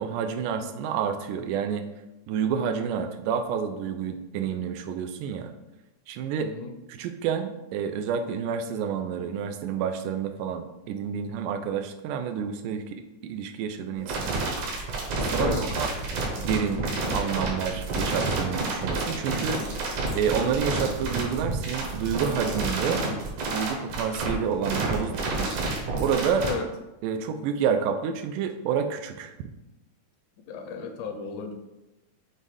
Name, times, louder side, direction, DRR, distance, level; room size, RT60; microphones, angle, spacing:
voice 1, 0.0-1.8 2.3-5.5 6.1-6.5 6.9-14.5 15.2-15.9 16.3-16.8 17.1-19.6 20.2-23.0 23.4-25.6 26.0-26.5 27.0-29.3, right 7 dB, 90° right, 7 dB, 2.2 m, -29 dB
voice 2, 4.3-4.6 6.4-6.7 14.0-14.3 15.4-15.7 20.2-20.6 26.4-26.7 30.5-31.5, left 5 dB, 80° left, 5 dB, 2.1 m, -36 dB
sound 1, 14.1-26.5, right 3 dB, 75° right, 2.7 m, -29 dB
7.6 x 2.6 x 4.8 m, 0.98 s
omnidirectional pair, 3.6 m